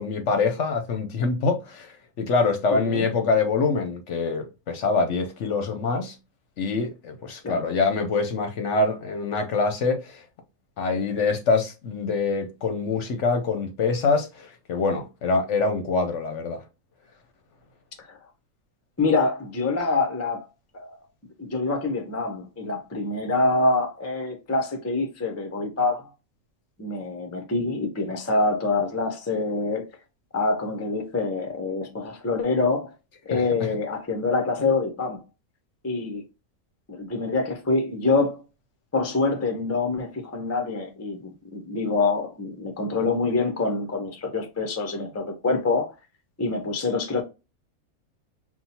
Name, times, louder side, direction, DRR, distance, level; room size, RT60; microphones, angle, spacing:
voice 1, 0.0-6.2 6.6-10.2 10.8-16.6 33.3-33.7, left 4 dB, 60° left, 0.9 m, -25 dB
voice 2, 2.7-3.1 7.4-7.7 18.1-18.2 19.0-20.5 20.7-21.0 21.4-26.1 26.8-29.9 30.3-32.9 33.3-35.2 35.8-36.2 36.9-38.4 38.9-45.9 46.4-47.2, left 3 dB, 20° left, 0.4 m, -25 dB
5.5 x 2.4 x 2.7 m
omnidirectional pair, 1.5 m